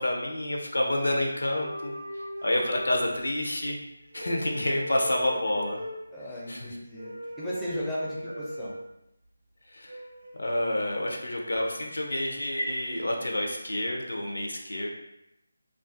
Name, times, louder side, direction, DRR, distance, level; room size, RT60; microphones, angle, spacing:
voice 1, 0.0-1.9 2.4-3.8 4.1-5.8 6.5-6.7 9.7-10.0 10.4-14.9, left 1 dB, 75° left, 1 dB, 0.5 m, -28 dB
sound 1, 1.6-3.7 4.0-6.1 6.9-8.9 9.9-11.2, equal, 70° right, 0.4 m, -39 dB
voice 2, 6.1-7.1 7.4-8.7, equal, 5° left, -8 dB, 0.4 m, -35 dB
2.3 x 2.2 x 2.5 m, 0.84 s
figure-of-eight pair, 160°, 0 cm